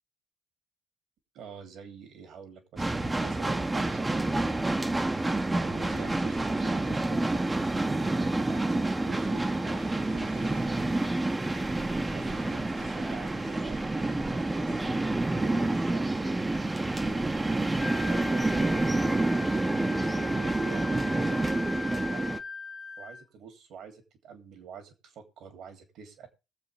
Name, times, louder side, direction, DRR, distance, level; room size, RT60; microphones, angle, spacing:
voice 1, 1.3-4.9 5.5-11.1 12.1-16.4 17.0-22.2 23.0-26.3, right 6 dB, 70° right, 6 dB, 3.0 m, -47 dB
sound 1, 2.8-22.4, right 2 dB, 20° right, 1.2 m, -28 dB
sound 2, 5.3-14.9, right 4 dB, 90° right, 4.3 m, -55 dB
Wind instrument woodwind instrument, 17.8-23.2, left 4 dB, 25° left, 1.5 m, -39 dB
21.0 x 7.4 x 3.4 m, 0.29 s
hypercardioid pair, 50°, 0 cm